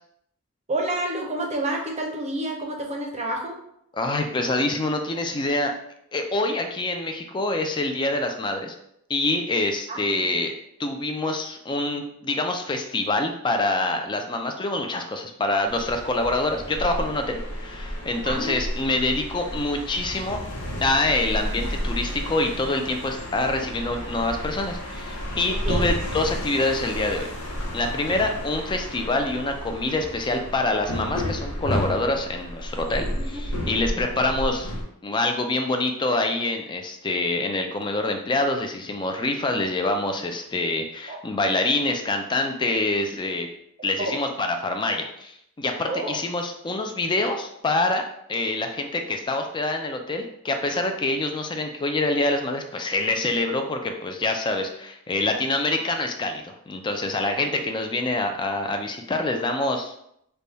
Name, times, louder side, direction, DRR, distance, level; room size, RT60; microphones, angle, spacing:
voice 1, 0.7-3.6 9.9-10.3 18.2-18.6 25.5-25.9 28.1-28.2 33.7-34.0 41.1-41.2 44.0-44.1 45.9-46.1, right 1 dB, 30° right, 1 dB, 0.6 m, -29 dB
voice 2, 3.9-5.7 6.1-8.7 9.1-10.5 10.8-20.4 20.8-27.3 27.7-34.7 35.0-43.5 43.8-48.0 48.3-59.9, left 2 dB, 20° left, 5 dB, 0.3 m, -26 dB
sound 1, 15.7-34.8, equal, 85° left, 0.8 m, -32 dB
3.4 x 2.2 x 3.9 m, 0.74 s
head